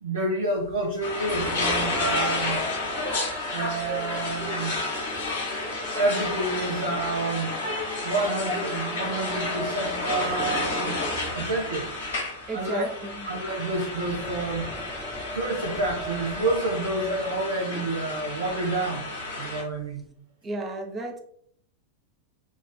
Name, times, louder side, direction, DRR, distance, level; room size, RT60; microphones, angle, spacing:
voice 1, 0.0-2.6 3.5-4.8 5.9-7.5 8.0-11.0 11.3-11.9 12.5-12.8 13.3-14.7 15.3-19.1 19.4-20.0, right 2 dB, 65° right, -1 dB, 0.7 m, -29 dB
sound 1, 0.6-5.9 6.2-6.6 7.1-7.2 8.0-11.3 11.6-17.9 18.5-18.6 18.9-19.1 19.4-20.1, equal, ahead, 0.4 m, -41 dB
sound 2, 1.0-19.6, left 2 dB, 65° left, 1.2 m, -31 dB
voice 2, 12.5-13.3 20.4-21.2, right 2 dB, 25° right, 4 dB, 0.7 m, -33 dB
6.1 x 2.4 x 2.2 m, 0.63 s
figure-of-eight pair, 90°, 0 cm